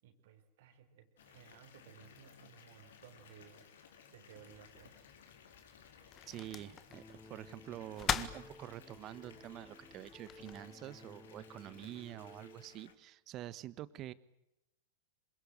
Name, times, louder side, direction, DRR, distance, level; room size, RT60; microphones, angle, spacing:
voice 1, 0.0-3.7 4.1-4.9, right 9 dB, 55° right, 6 dB, 4.4 m, -59 dB
Water tap faucet / Bathtub (filling or washing) / Fill (with liquid), 1.2-12.9, left 7 dB, 60° left, 4.1 m, -60 dB
sound 1, 4.5-10.6, left 9 dB, 25° left, 1.7 m, -43 dB
voice 2, 6.3-7.0 7.3-14.1, right 14 dB, 35° right, 18 dB, 1.4 m, -47 dB
sound 2, 6.9-13.0, left 1 dB, 5° left, 1.4 m, -57 dB
27.5 x 25.5 x 8.0 m, 0.87 s
figure-of-eight pair, 95°, 0 cm